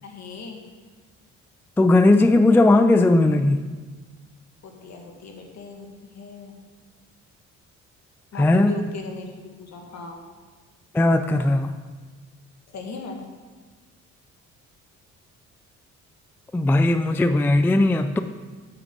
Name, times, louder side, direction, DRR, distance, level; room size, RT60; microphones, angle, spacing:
voice 1, 0.0-0.6 4.6-6.5 8.3-10.2 12.7-13.2, left 4 dB, 60° left, 2 dB, 1.7 m, -38 dB
voice 2, 1.8-3.6 8.4-8.7 10.9-11.7 16.5-18.2, left 2 dB, 5° left, 9 dB, 0.3 m, -17 dB
8.8 x 8.1 x 3.8 m, 1.4 s
cardioid pair, 90°, 30 cm